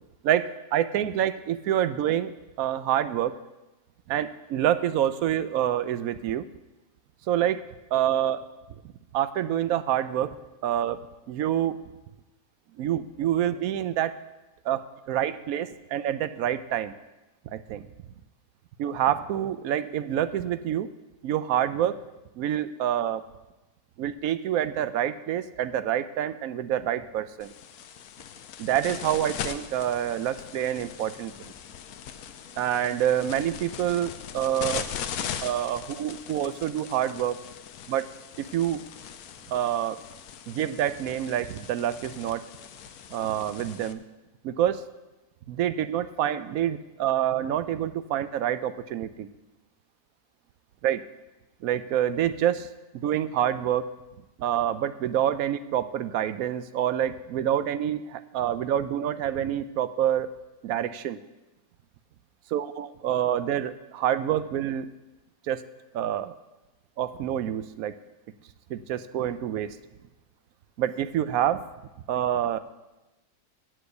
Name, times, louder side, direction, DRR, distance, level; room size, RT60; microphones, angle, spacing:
voice 1, 0.2-2.3 2.6-3.3 4.1-6.4 7.3-7.6 7.9-8.4 9.1-10.4 10.6-11.0 11.3-11.8 12.8-14.2 14.6-16.9 17.5-17.8 18.8-20.9 21.2-22.0 22.4-23.2 24.0-27.5 28.6-31.3 32.6-34.9 35.4-37.4 37.9-38.1 38.5-38.8 39.5-40.0 40.5-42.4 43.1-44.0 44.4-44.8 45.5-49.3 50.8-51.0 51.6-52.7 52.9-53.9 54.4-60.3 60.6-61.2 62.5-64.9 65.5-65.6 65.9-66.3 67.0-67.9 68.7-69.8 70.8-71.6 72.1-72.6, right 11 dB, 75° right, 13 dB, 1.0 m, -27 dB
sound 1, 27.4-43.9, left 8 dB, 75° left, 1.1 m, -40 dB
8.3 x 7.8 x 8.0 m, 1.0 s
omnidirectional pair, 1.6 m